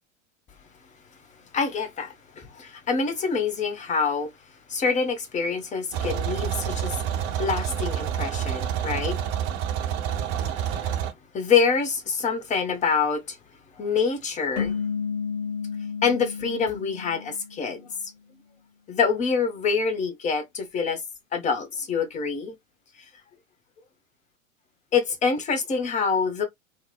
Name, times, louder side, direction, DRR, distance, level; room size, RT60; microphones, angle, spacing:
voice 1, 1.5-4.3 4.7-7.0 7.4-9.2 11.3-13.4 13.8-14.8 16.0-18.1 18.9-21.0 21.3-22.6 24.9-26.5, left 5 dB, 20° left, 0.6 m, -26 dB
sound 1, 5.9-11.1, right 9 dB, 45° right, 0.7 m, -28 dB
sound 2, 14.6-17.9, left 6 dB, 40° left, 1.2 m, -32 dB
2.9 x 2.0 x 2.3 m
figure-of-eight pair, 90°, 40 cm